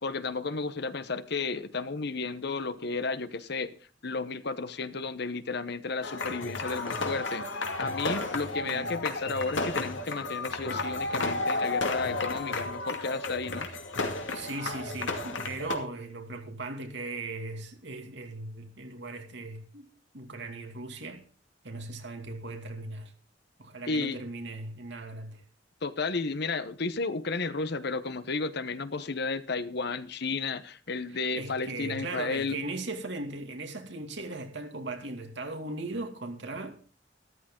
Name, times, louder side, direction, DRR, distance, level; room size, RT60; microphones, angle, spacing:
voice 1, 0.0-3.8 4.0-13.7 23.9-24.2 25.8-32.6, left 4 dB, 60° left, 1.0 m, -33 dB
sound 1, 6.0-15.8, left 3 dB, 80° left, 2.4 m, -33 dB
voice 2, 8.6-9.0 14.3-19.9 20.1-21.2 21.6-23.1 23.6-25.4 31.1-36.8, right 2 dB, 65° right, 2.4 m, -38 dB
13.5 x 13.5 x 3.8 m
head